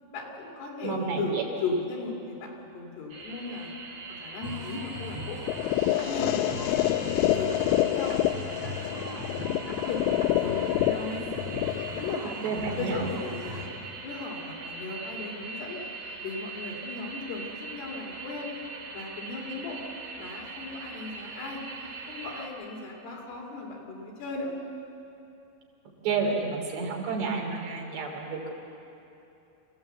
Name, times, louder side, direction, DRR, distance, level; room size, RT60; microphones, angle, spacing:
voice 1, 0.1-3.7 4.2-5.4 5.9-8.1 8.5-11.3 11.9-13.7 14.0-15.8 16.2-18.5 18.9-19.8 20.2-21.6 22.1-24.5, left 3 dB, 70° left, 0 dB, 4.6 m, -37 dB
voice 2, 0.8-1.4 12.4-13.0 26.0-28.5, right 4 dB, 75° right, 0 dB, 4.9 m, -30 dB
sound 1, 3.1-22.5, right 4 dB, 55° right, 3.4 m, -42 dB
sound 2, 4.4-13.7, left 1 dB, 10° right, 1.4 m, -40 dB
sound 3, 5.5-13.5, left 13 dB, 85° left, 2.9 m, -28 dB
26.0 x 16.0 x 8.0 m, 2.9 s
omnidirectional pair, 5.0 m